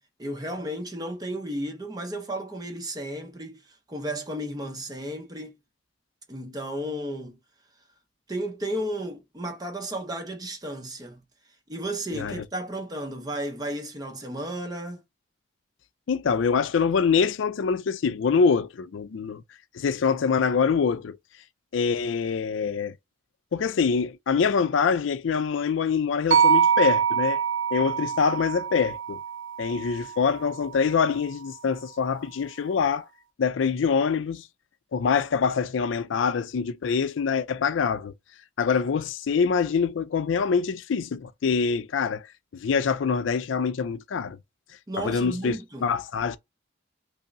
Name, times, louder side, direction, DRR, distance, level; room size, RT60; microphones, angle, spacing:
voice 1, 0.2-3.6 3.9-5.6 6.3-7.4 8.3-11.2 11.7-15.0 44.9-45.9, right 1 dB, 20° right, 0.6 m, -33 dB
voice 2, 12.1-12.4 16.1-19.4 19.7-21.2 21.7-22.9 23.5-27.4 27.7-29.2 29.6-33.0 33.4-34.5 34.9-38.1 38.6-42.3 42.5-44.4 45.0-46.4, left 6 dB, 75° left, 0.4 m, -25 dB
sound 1, 26.3-30.5, right 7 dB, 65° right, 0.6 m, -24 dB
5.3 x 2.0 x 2.6 m
head